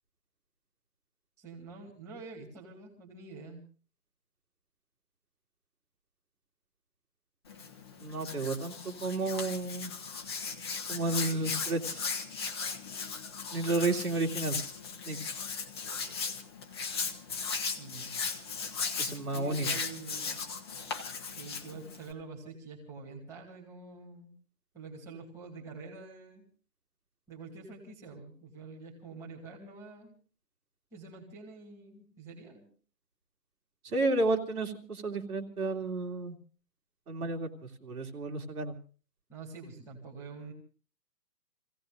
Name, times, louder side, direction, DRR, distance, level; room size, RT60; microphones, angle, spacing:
voice 1, 1.4-3.6 17.7-18.1 19.3-20.4 21.4-24.3 24.7-26.4 27.3-30.1 30.9-32.7 39.3-40.5, right 4 dB, 5° right, -4 dB, 2.3 m, -46 dB
Hands, 7.5-22.1, left 5 dB, 15° left, 0.8 m, -37 dB
voice 2, 8.0-9.9 10.9-12.1 13.5-14.6 15.0-15.2 19.0-19.7 33.8-36.4 37.1-37.5 37.8-38.7, right 2 dB, 60° right, 3 dB, 2.7 m, -32 dB
29.5 x 16.5 x 2.5 m, 0.38 s
hypercardioid pair, 165°, 50 cm